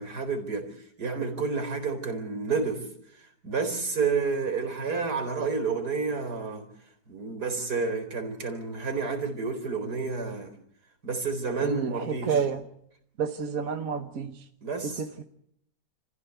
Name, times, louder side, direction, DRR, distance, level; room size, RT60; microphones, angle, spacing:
voice 1, 0.0-2.9 3.2-6.7 7.1-10.5 11.0-12.5 14.6-15.1, right 4 dB, 85° right, 7 dB, 4.7 m, -30 dB
voice 2, 11.6-11.9 12.2-12.6 13.2-14.3, right 6 dB, 60° right, 6 dB, 1.7 m, -28 dB
30.0 x 15.5 x 8.3 m, 0.71 s
omnidirectional pair, 1.7 m